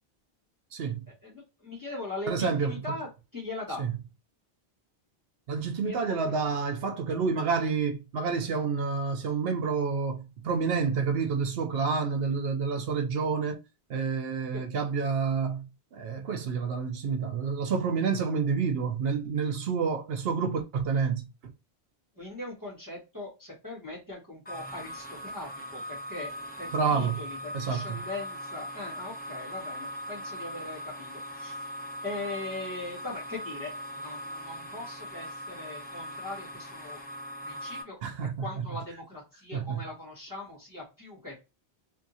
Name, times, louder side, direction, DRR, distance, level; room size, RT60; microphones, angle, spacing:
voice 1, 0.7-1.0 2.3-2.8 3.8-4.0 5.5-13.6 13.9-21.5 26.7-27.2 27.5-28.0 38.0-38.7 39.5-39.8, right 5 dB, 70° right, 0.8 m, -29 dB
voice 2, 1.2-3.8 5.8-6.3 14.5-14.6 22.2-26.3 26.6-31.6 32.0-37.0 37.4-41.3, left 2 dB, 20° right, 1.3 m, -40 dB
sound 1, 24.4-37.8, equal, 15° left, 0.3 m, -40 dB
3.5 x 2.7 x 2.7 m
omnidirectional pair, 1.1 m